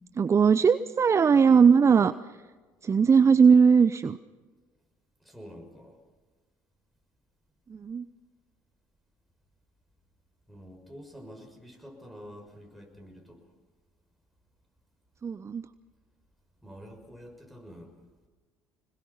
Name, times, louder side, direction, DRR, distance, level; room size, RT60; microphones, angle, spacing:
voice 1, 0.2-2.1 2.8-4.2 7.7-8.1 15.2-15.6, right 6 dB, 30° right, 14 dB, 0.6 m, -19 dB
voice 2, 5.2-6.0 10.5-13.5 16.6-17.9, equal, ahead, 2 dB, 6.5 m, -47 dB
25.5 x 21.0 x 5.6 m, 1.4 s
hypercardioid pair, 65°, 9 cm